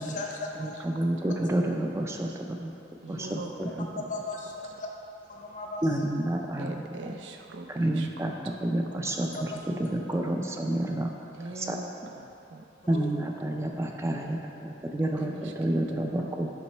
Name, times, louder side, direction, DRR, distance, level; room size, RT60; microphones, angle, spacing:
voice 1, 0.0-0.8 3.1-3.2 4.1-4.9 5.3-5.8 9.3-9.4 12.8-13.1, left 2 dB, 45° left, 0 dB, 0.6 m, -37 dB
voice 2, 0.6-2.7 3.1-4.0 5.8-7.1 7.7-8.3 8.6-11.2 11.6-11.8 12.9-16.5, right 1 dB, 15° right, 2 dB, 0.4 m, -29 dB
voice 3, 3.0-3.5 6.6-8.1 8.4-8.6 9.3-9.6 11.3-11.9 12.2-12.7 15.2-16.3, right 3 dB, 85° right, 4 dB, 0.5 m, -42 dB
7.2 x 3.0 x 4.4 m, 2.7 s
head